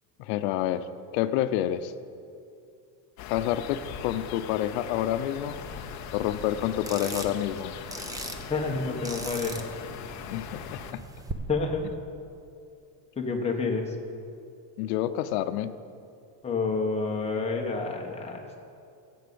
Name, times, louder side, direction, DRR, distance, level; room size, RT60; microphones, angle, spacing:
voice 1, 0.2-0.9 1.1-1.9 3.3-5.6 6.1-7.7 10.3-11.0 14.8-15.7, left 12 dB, 65° left, 11 dB, 0.8 m, -28 dB
sound 1, 3.2-10.9, left 9 dB, 35° left, 0.7 m, -41 dB
sound 2, 5.5-11.3, right 2 dB, 10° right, 0.5 m, -41 dB
voice 2, 8.5-9.7 11.5-11.8 13.1-14.0 16.4-18.6, left 4 dB, 15° left, 1 dB, 1.2 m, -29 dB
14.0 x 8.7 x 7.0 m, 2.5 s
cardioid pair, 160°, 48 cm